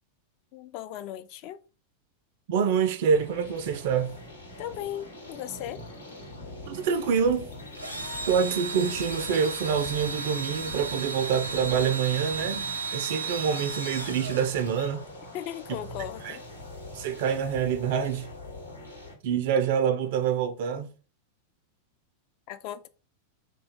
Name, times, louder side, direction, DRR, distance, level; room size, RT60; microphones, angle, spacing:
voice 1, 0.5-1.6 4.6-5.8 15.3-16.4 22.5-22.9, left 11 dB, 45° left, 0.3 m, -37 dB
voice 2, 2.5-4.2 6.7-7.5 8.3-15.0 16.2-16.4 16.9-18.3 19.2-20.9, right 7 dB, 50° right, 0.3 m, -26 dB
sound 1, 3.1-19.1, left 1 dB, 85° left, 1.1 m, -43 dB
sound 2, 5.1-14.9, left 4 dB, 65° left, 0.7 m, -49 dB
Engine / Drill, 7.7-15.1, right 4 dB, 85° right, 0.6 m, -35 dB
2.8 x 2.2 x 4.0 m
figure-of-eight pair, 90°, 0 cm